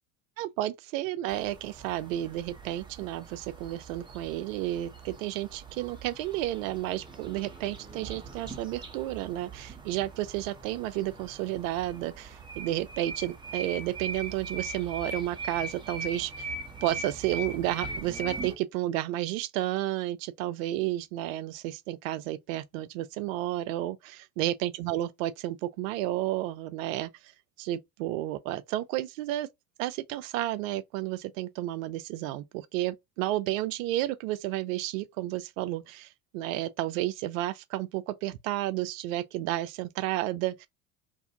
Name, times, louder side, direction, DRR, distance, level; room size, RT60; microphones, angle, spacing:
voice 1, 0.4-16.6 16.8-27.3 27.6-29.5 29.8-40.7, right 14 dB, 65° right, 0.5 m, -32 dB
sound 1, 1.3-18.5, right 3 dB, 10° right, 0.9 m, -41 dB
2.6 x 2.4 x 2.7 m
hypercardioid pair, 70°, 44 cm